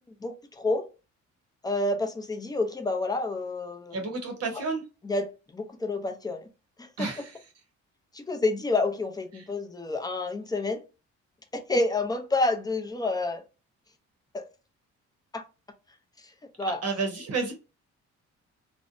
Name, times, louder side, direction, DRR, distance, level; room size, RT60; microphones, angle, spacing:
voice 1, 0.2-0.9 1.6-4.0 5.0-5.3 5.5-6.5 6.8-7.1 8.1-10.8 11.5-13.4 14.3-14.4 15.3-15.4 16.6-16.8, left 2 dB, 15° left, 0.5 m, -28 dB
voice 2, 3.9-4.8 7.0-7.4 9.3-9.5 16.7-17.5, right 4 dB, 55° right, 0.8 m, -31 dB
2.5 x 2.1 x 2.5 m
cardioid pair, 90°, 30 cm